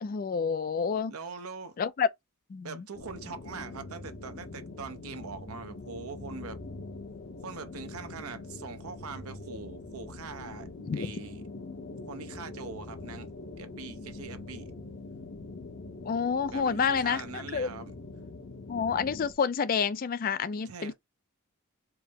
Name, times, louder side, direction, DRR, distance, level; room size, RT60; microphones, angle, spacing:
voice 1, 0.0-1.1 1.8-2.1 2.5-2.8 10.9-11.1 16.1-17.7 18.7-20.9, left 6 dB, 40° left, 0.3 m, -29 dB
voice 2, 1.1-1.8 2.6-6.6 7.4-11.4 12.1-13.3 13.6-14.7 16.5-18.0 20.6-20.9, right 5 dB, 85° right, 0.7 m, -42 dB
sound 1, 2.9-19.3, left 3 dB, 55° left, 0.8 m, -43 dB
4.5 x 2.0 x 3.5 m
head